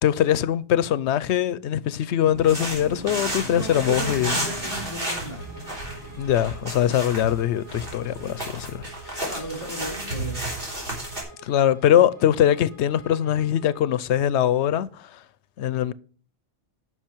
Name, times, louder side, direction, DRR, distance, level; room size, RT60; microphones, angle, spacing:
voice 1, 0.0-4.4 6.2-8.9 11.4-15.2 15.6-15.9, left 10 dB, 90° left, 0.9 m, -22 dB
sound 1, 2.2-7.9, right 2 dB, 15° right, 0.9 m, -43 dB
sound 2, 2.3-11.2, right 1 dB, 55° right, 3.4 m, -32 dB
voice 2, 3.5-5.5 9.2-10.4, right 1 dB, 35° left, 3.5 m, -35 dB
Bowed string instrument, 5.4-13.9, right 1 dB, 15° left, 4.3 m, -48 dB
10.0 x 6.3 x 4.5 m
omnidirectional pair, 1.1 m